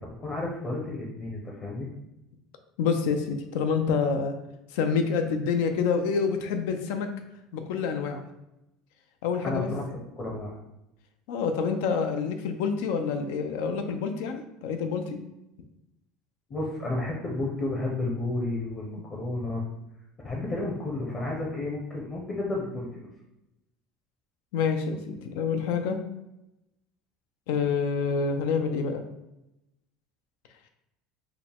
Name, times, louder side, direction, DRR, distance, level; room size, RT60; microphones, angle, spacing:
voice 1, 0.2-1.9 9.4-9.9 10.2-10.6 16.5-19.6 20.2-23.1, left 2 dB, 25° left, -3 dB, 0.8 m, -31 dB
voice 2, 2.8-4.3 4.7-7.1 7.5-8.2 9.2-9.7 11.3-15.2 24.5-26.0 27.5-29.0, left 5 dB, 80° left, 6 dB, 0.5 m, -27 dB
4.6 x 2.2 x 3.5 m, 0.90 s
cardioid pair, 145°, 0 cm